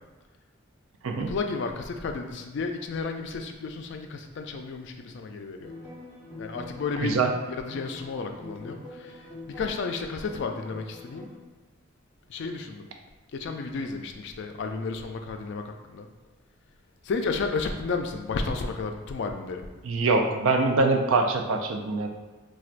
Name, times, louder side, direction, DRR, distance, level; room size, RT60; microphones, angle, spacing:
voice 1, 1.2-5.7 6.4-7.2 7.5-11.3 12.3-12.9 13.3-16.1 17.0-19.7 20.2-20.3, left 4 dB, 60° left, 5 dB, 0.3 m, -32 dB
sound 1, 5.6-11.4, left 2 dB, 15° right, 0.9 m, -44 dB
voice 2, 7.0-7.3 19.8-22.1, right 3 dB, 80° right, 4 dB, 0.4 m, -24 dB
4.3 x 2.3 x 2.5 m, 1.3 s
head